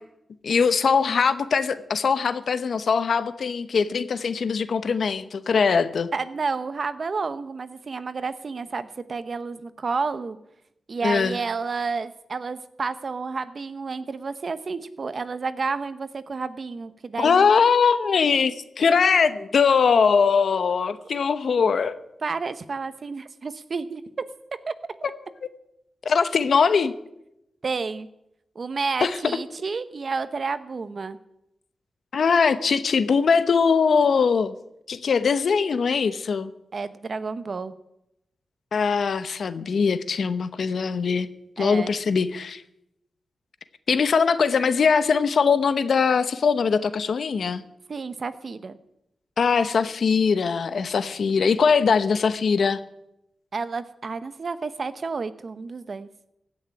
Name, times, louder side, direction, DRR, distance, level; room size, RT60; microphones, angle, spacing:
voice 1, 0.4-6.1 11.0-11.4 17.2-22.0 26.0-26.9 29.0-29.2 32.1-34.5 34.9-36.5 38.7-41.3 41.6-42.6 43.9-47.6 49.4-52.8, left 5 dB, 70° left, 13 dB, 0.9 m, -21 dB
voice 2, 6.1-10.4 10.9-17.5 22.2-24.2 24.7-24.8 27.6-28.1 28.5-31.2 36.7-37.7 41.6-42.0 47.9-48.8 53.5-56.1, right 4 dB, 55° right, 13 dB, 0.9 m, -30 dB
16.0 x 6.5 x 9.7 m, 0.83 s
cardioid pair, 65°, 0 cm